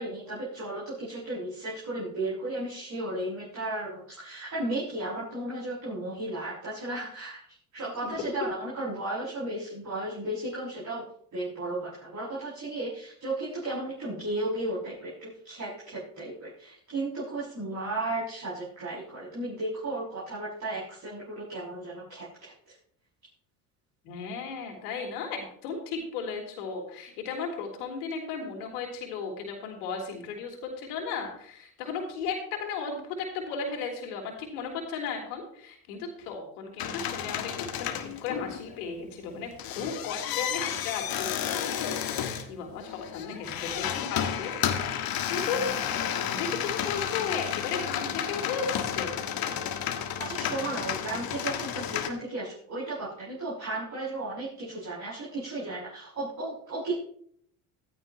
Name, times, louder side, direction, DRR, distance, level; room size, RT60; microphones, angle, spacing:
voice 1, 0.0-7.4 7.7-11.1 11.3-22.7 50.2-57.0, right 2 dB, 40° right, -8 dB, 6.9 m, -34 dB
voice 2, 24.0-44.5 45.0-49.2, left 5 dB, 75° left, 2 dB, 3.5 m, -35 dB
sound 1, 36.8-38.8 39.3-52.1, left 9 dB, 50° left, 1.6 m, -32 dB
15.0 x 13.5 x 3.1 m, 0.64 s
hypercardioid pair, 65°, 46 cm